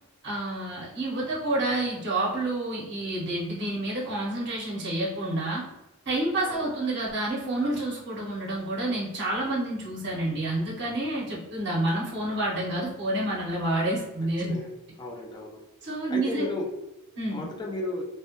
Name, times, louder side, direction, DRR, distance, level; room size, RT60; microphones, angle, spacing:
voice 1, 0.2-5.6 6.1-14.5 15.8-16.5 17.2-17.4, right 1 dB, 55° right, -4 dB, 0.7 m, -29 dB
voice 2, 15.0-15.6 16.1-16.6 17.3-18.0, left 2 dB, 20° left, 1 dB, 0.4 m, -33 dB
2.2 x 2.1 x 2.8 m, 0.97 s
head